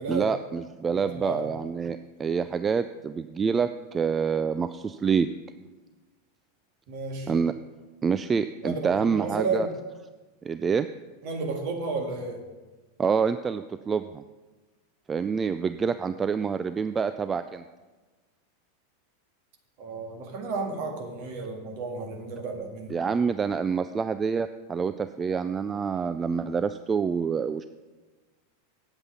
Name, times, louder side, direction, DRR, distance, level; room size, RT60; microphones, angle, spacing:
voice 1, 0.1-5.3 7.3-7.5 8.0-9.7 10.4-10.9 13.0-14.2 15.1-17.6 22.9-27.6, right 6 dB, 20° right, 11 dB, 0.3 m, -27 dB
voice 2, 1.0-1.4 6.9-7.3 8.6-9.7 11.2-12.4 19.8-23.0, right 4 dB, 50° right, 3 dB, 1.8 m, -32 dB
8.9 x 8.0 x 5.6 m, 1.3 s
figure-of-eight pair, 90°, 0 cm